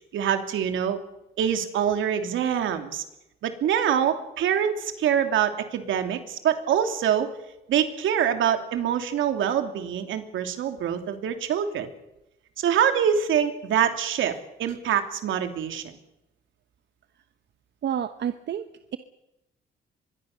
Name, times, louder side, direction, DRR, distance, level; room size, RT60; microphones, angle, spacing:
voice 1, 0.1-1.0 1.4-3.0 3.4-7.3 7.7-11.9 12.6-15.8, right 9 dB, 80° right, 7 dB, 3.0 m, -25 dB
voice 2, 17.8-18.6, right 9 dB, 60° right, 10 dB, 1.1 m, -28 dB
24.5 x 22.0 x 6.7 m, 0.92 s
cardioid pair, 90°, 20 cm